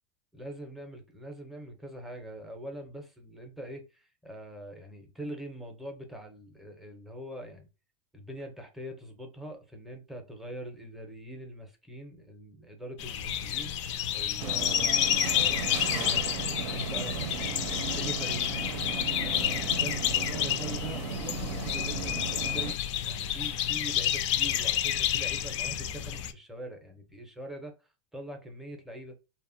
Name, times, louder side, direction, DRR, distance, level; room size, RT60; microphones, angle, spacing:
voice 1, 0.3-7.7 8.1-13.7 14.1-15.0 15.3-18.5 19.2-27.7 28.1-29.2, right 1 dB, ahead, 0.5 m, -43 dB
sound 1, 13.0-26.3, left 10 dB, 75° left, 0.4 m, -30 dB
sound 2, 14.4-22.7, right 7 dB, 90° right, 0.5 m, -36 dB
2.8 x 2.1 x 2.5 m
supercardioid pair, 155°, 16 cm